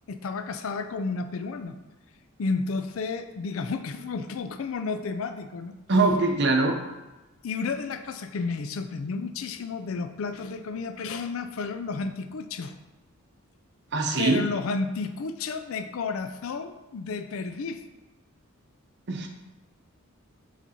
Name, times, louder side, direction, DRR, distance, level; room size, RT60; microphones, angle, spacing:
voice 1, 0.1-1.8 2.4-5.7 7.4-12.7 14.2-17.8, left 4 dB, 75° left, 9 dB, 0.4 m, -32 dB
voice 2, 5.9-6.8 13.9-14.4 19.1-19.3, right 3 dB, 55° right, 3 dB, 0.7 m, -22 dB
7.2 x 4.0 x 4.2 m, 1.1 s
head